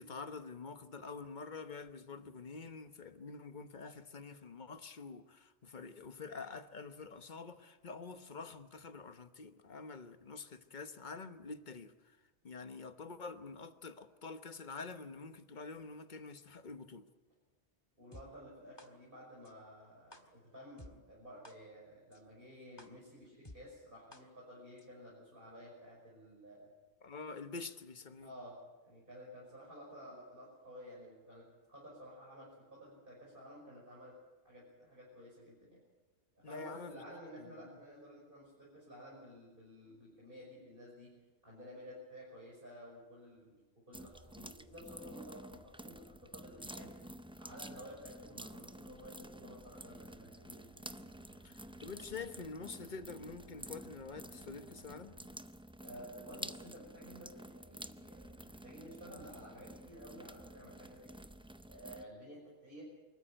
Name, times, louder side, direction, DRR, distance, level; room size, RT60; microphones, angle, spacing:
voice 1, 0.0-12.2 12.4-17.1 27.0-28.3 36.4-37.0 37.4-37.8 51.4-55.1, left 4 dB, 45° left, 1.2 m, -47 dB
voice 2, 18.0-26.7 28.2-28.6 28.9-34.2 34.4-35.8 36.4-41.2 41.4-43.6 43.9-46.9 47.4-50.7 55.8-61.2 61.7-62.9, equal, 50° right, 6.2 m, -53 dB
sound 1, 18.1-18.2 18.8-18.9 19.4-19.5 20.1-20.2 20.8-20.9 21.4-21.5 22.1-22.2 22.8-22.9 23.4-23.6 24.1-24.2 24.8-24.9, left 1 dB, 25° left, 1.7 m, -52 dB
sound 2, 43.9-62.0, right 1 dB, 5° right, 0.4 m, -51 dB
Bowed string instrument, 49.7-55.4, right 3 dB, 65° left, 2.8 m, -62 dB
25.0 x 14.0 x 9.0 m
omnidirectional pair, 1.1 m